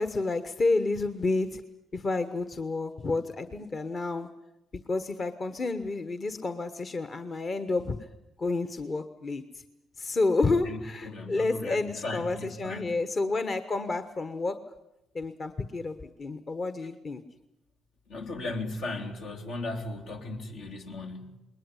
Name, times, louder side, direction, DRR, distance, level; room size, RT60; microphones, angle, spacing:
voice 1, 0.0-1.6 1.9-4.3 4.9-8.1 8.4-9.6 10.0-14.6 15.1-17.2, left 3 dB, 40° left, 10 dB, 1.2 m, -30 dB
voice 2, 10.6-13.0 18.1-21.4, left 2 dB, 80° left, 3 dB, 2.9 m, -37 dB
20.5 x 20.0 x 9.8 m, 0.92 s
cardioid pair, 75°, 0 cm